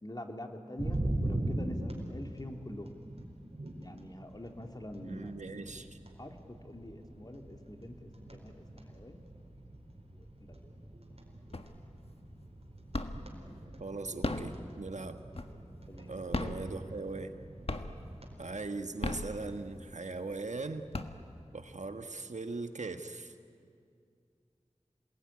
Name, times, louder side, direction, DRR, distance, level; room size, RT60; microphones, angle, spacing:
voice 1, 0.0-2.9 3.8-5.4 6.2-9.2 10.1-10.6 15.9-16.2, left 1 dB, 35° left, 4 dB, 2.7 m, -45 dB
sound 1, 0.8-18.4, right 1 dB, 55° right, 4.5 m, -42 dB
voice 2, 5.0-6.0 13.8-15.2 16.1-17.3 18.4-20.9 21.5-23.3, right 3 dB, 75° right, 8 dB, 1.4 m, -40 dB
sound 2, 11.5-12.0 12.4-13.4 14.0-15.8 16.2-17.4 17.7-18.2 18.8-19.9 20.4-20.5 20.7-21.6, left 2 dB, 55° left, 1.5 m, -36 dB
27.5 x 20.5 x 9.7 m, 2.3 s
wide cardioid pair, 40°, 12 cm